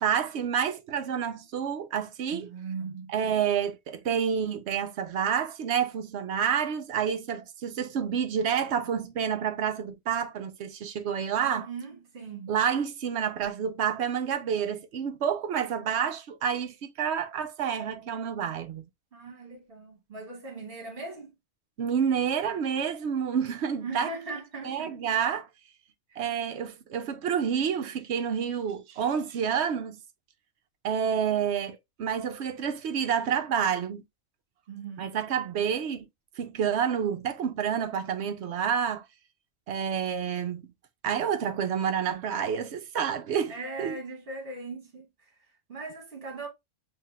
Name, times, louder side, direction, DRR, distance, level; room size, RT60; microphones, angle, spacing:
voice 1, 0.0-2.5 3.1-11.7 12.5-18.8 21.8-24.1 24.6-25.5 26.2-30.0 30.8-34.0 35.0-36.1 36.4-39.0 39.7-40.6 41.0-43.5 43.8-43.9, right 8 dB, 65° right, 0.8 m, -29 dB
voice 2, 2.3-3.1 11.4-12.6 19.1-21.3 23.8-25.0 26.1-26.3 34.7-35.1 43.5-46.5, right 3 dB, 50° right, 1.3 m, -39 dB
7.4 x 2.7 x 2.2 m
omnidirectional pair, 1.3 m